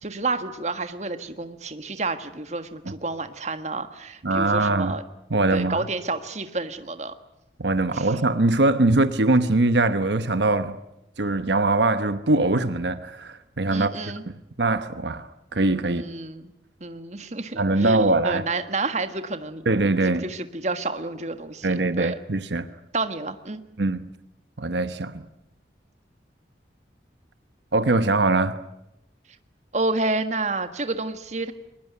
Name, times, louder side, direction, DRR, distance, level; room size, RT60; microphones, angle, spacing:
voice 1, 0.0-5.0 5.5-7.1 7.9-8.1 13.7-14.2 15.8-16.5 16.8-19.9 20.2-22.2 22.9-23.6 29.7-31.5, right 3 dB, 40° right, 9 dB, 1.6 m, -30 dB
voice 2, 4.2-5.0 5.3-5.9 7.6-10.8 11.2-16.1 17.6-18.4 19.7-20.2 21.6-22.7 23.8-24.1 24.6-25.2 27.7-28.6, right 2 dB, 80° right, 11 dB, 1.0 m, -22 dB
22.5 x 21.0 x 9.5 m, 0.86 s
head